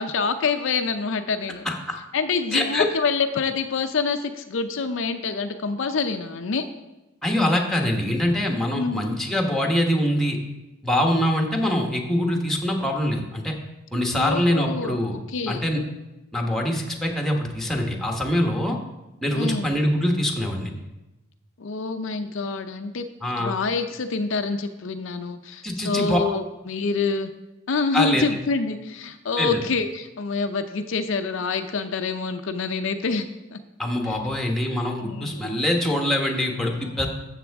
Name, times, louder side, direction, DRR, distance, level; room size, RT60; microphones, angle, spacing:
voice 1, 0.0-1.6 2.1-6.7 8.7-9.0 14.1-15.0 15.3-15.6 19.3-19.7 21.6-23.1 23.4-27.3 27.7-33.6 34.1-34.2 35.0-35.5 36.8-37.1, left 4 dB, 65° left, 7 dB, 0.5 m, -26 dB
voice 2, 1.6-2.0 2.5-2.9 7.2-10.4 10.8-13.5 13.9-15.2 15.5-15.8 16.3-18.8 19.2-20.8 23.2-23.5 25.6-26.2 27.9-28.2 29.4-29.6 33.8-37.1, left 1 dB, ahead, 1 dB, 1.1 m, -24 dB
13.0 x 7.4 x 3.5 m, 1.0 s
head